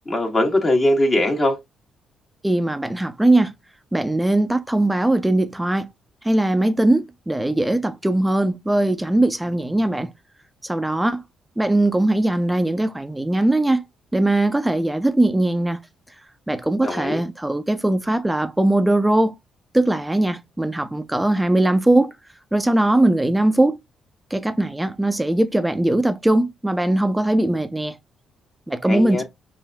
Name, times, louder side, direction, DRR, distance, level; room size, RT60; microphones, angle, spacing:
voice 1, 0.1-1.6 16.8-17.2 28.9-29.2, left 1 dB, 30° left, 1.5 m, -20 dB
voice 2, 2.4-3.5 3.9-5.9 6.2-10.1 10.6-11.2 11.6-13.8 14.1-15.8 16.5-19.3 19.7-22.1 22.5-23.8 24.3-27.9 28.7-29.2, right 1 dB, 10° right, 0.5 m, -20 dB
5.3 x 2.6 x 2.2 m
cardioid pair, 90°, 0 cm